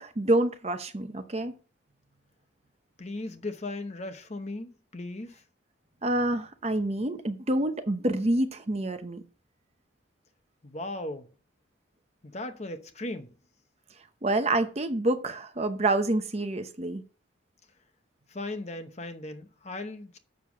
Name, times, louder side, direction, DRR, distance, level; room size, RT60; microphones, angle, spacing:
voice 1, 0.0-1.5 6.0-9.2 14.2-17.0, right 1 dB, 30° right, 0.8 m, -27 dB
voice 2, 3.0-5.4 10.6-11.3 12.2-13.3 18.3-20.2, left 2 dB, 35° left, 0.9 m, -37 dB
7.2 x 6.7 x 6.0 m
head